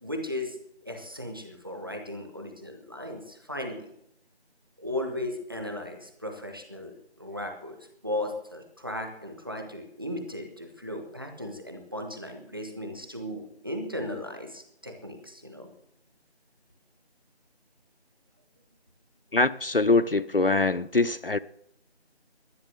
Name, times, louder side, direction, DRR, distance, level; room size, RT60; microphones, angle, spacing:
voice 1, 0.0-0.6 0.8-3.9 4.8-15.7, left 1 dB, 20° right, 1.3 m, -36 dB
voice 2, 19.3-21.4, left 3 dB, 55° left, 0.5 m, -23 dB
11.0 x 10.5 x 7.9 m
figure-of-eight pair, 170°, 33 cm